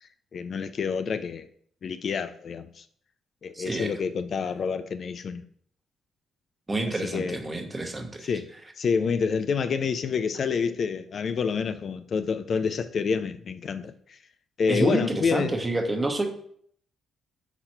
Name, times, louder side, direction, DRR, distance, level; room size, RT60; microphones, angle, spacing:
voice 1, 0.0-1.5 1.8-2.8 3.4-5.4 6.9-7.4 8.2-8.5 8.8-14.2 14.6-15.5, left 5 dB, 50° left, 0.4 m, -28 dB
voice 2, 3.5-3.9 6.7-8.3 14.7-16.3, right 2 dB, 20° right, 1.1 m, -28 dB
5.4 x 4.0 x 4.4 m
cardioid pair, 90°, 0 cm